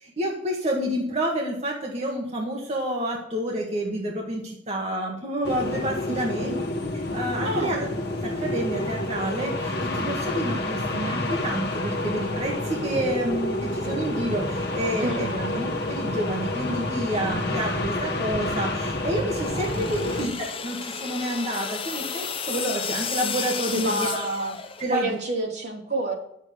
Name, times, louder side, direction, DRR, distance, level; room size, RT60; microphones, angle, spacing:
voice 1, 0.0-6.5 7.1-7.9 8.2-15.3 15.5-20.3 20.6-24.2 24.8-25.2, right 1 dB, 40° right, -1 dB, 1.7 m, -29 dB
sound 1, 5.4-20.3, left 1 dB, 60° left, 1.4 m, -29 dB
voice 2, 6.1-6.6 7.4-7.9 15.0-15.6 20.0-20.3 23.7-24.6 24.9-26.1, right 2 dB, 65° right, -3 dB, 2.9 m, -29 dB
sound 2, 19.3-25.1, left 6 dB, 30° left, 0.8 m, -33 dB
9.6 x 7.4 x 5.2 m, 0.79 s
head